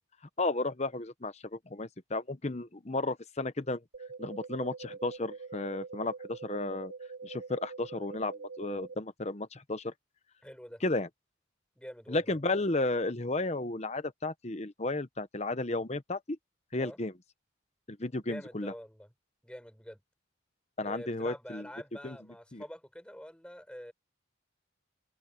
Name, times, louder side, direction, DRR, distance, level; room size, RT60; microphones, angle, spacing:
voice 1, 0.4-3.8 4.2-6.9 7.2-9.9 10.8-11.1 12.1-16.4 16.7-17.1 17.9-18.7 20.8-21.7 22.0-22.2 22.5-22.6, left 2 dB, 35° left, 1.0 m, -33 dB
sound 1, 3.9-8.9, right 4 dB, 75° right, 3.0 m, -44 dB
voice 2, 10.4-10.8 11.8-12.3 16.8-17.0 18.2-19.1 19.4-20.0 20.8-23.9, equal, 5° left, 4.9 m, -46 dB
open air
head